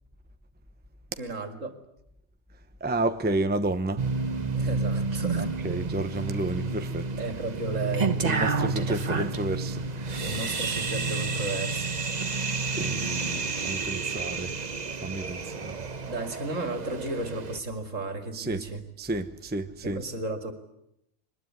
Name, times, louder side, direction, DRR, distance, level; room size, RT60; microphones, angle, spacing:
voice 1, 1.2-1.7 4.5-5.5 7.2-8.2 10.2-11.9 16.0-18.8 19.8-20.5, right 2 dB, 65° right, 2.8 m, -34 dB
voice 2, 2.8-4.0 5.4-7.1 8.2-10.4 12.2-14.5 15.0-15.7 18.3-18.7 19.0-20.0, right 2 dB, 10° right, 0.9 m, -31 dB
Microcosmic Orbit with beats, 4.0-17.6, right 4 dB, 35° right, 1.0 m, -30 dB
22.5 x 20.5 x 9.6 m
omnidirectional pair, 1.4 m